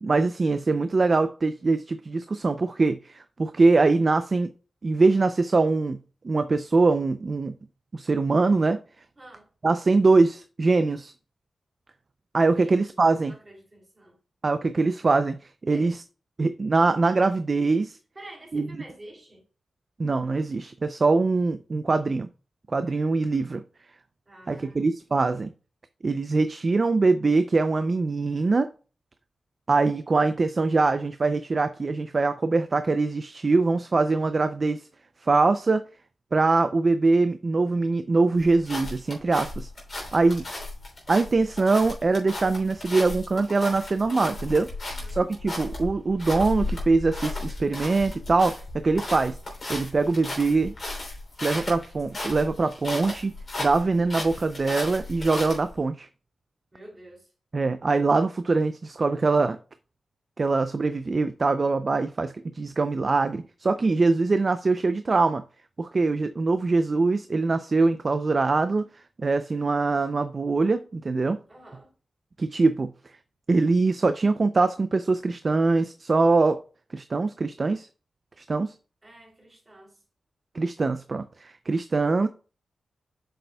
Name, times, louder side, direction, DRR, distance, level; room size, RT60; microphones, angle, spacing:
voice 1, 0.0-4.5 4.8-6.0 6.2-7.5 7.9-8.8 9.6-11.1 12.3-13.3 14.4-16.0 16.4-18.0 18.5-18.7 20.0-22.3 22.7-23.6 24.5-25.5 26.0-28.7 29.7-34.9 35.2-35.8 36.3-39.7 40.1-40.5 41.1-44.7 45.1-49.4 49.7-50.7 51.4-53.3 53.6-56.1 57.5-59.6 60.4-65.4 65.8-68.8 69.2-71.4 72.4-72.9 73.5-76.6 76.9-77.9 78.4-78.7 80.5-82.3, right 3 dB, 40° right, 0.4 m, -23 dB
voice 2, 9.2-9.5 12.6-12.8 13.2-14.2 15.7-16.0 18.1-19.4 24.3-24.9 44.8-45.2 56.7-57.3 71.5-71.9 79.0-80.0, right 1 dB, 25° right, 3.1 m, -48 dB
sound 1, 38.4-55.8, left 2 dB, 40° left, 3.1 m, -35 dB
7.6 x 6.7 x 2.2 m
wide cardioid pair, 110°, 0 cm